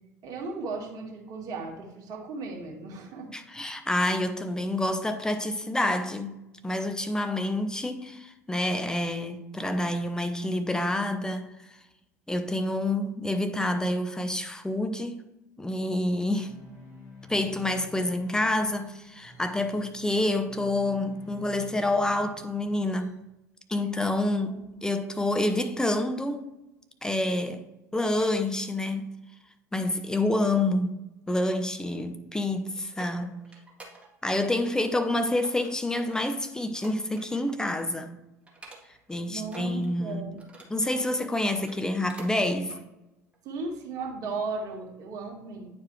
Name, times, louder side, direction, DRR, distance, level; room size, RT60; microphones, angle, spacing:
voice 1, 0.2-3.3 24.2-24.6 39.2-40.4 43.4-45.7, right 3 dB, 45° right, 1.9 m, -36 dB
voice 2, 3.3-6.4 6.6-11.5 12.3-15.2 15.6-16.5 17.3-23.2 23.7-26.5 27.0-27.7 27.9-29.1 29.7-31.0 31.3-33.4 34.2-38.2 39.1-40.3 40.7-42.7, left 1 dB, 10° left, 0.8 m, -28 dB
sound 1, 16.3-23.1, left 2 dB, 35° left, 2.5 m, -50 dB
sound 2, 32.6-34.4 34.7-35.1 35.4-37.6 37.9-38.1 38.5-39.1 39.4-41.0 41.5-42.3 42.6-42.8 43.3-43.4, right 3 dB, 15° right, 1.8 m, -49 dB
9.3 x 4.7 x 3.2 m
figure-of-eight pair, 70°, 8 cm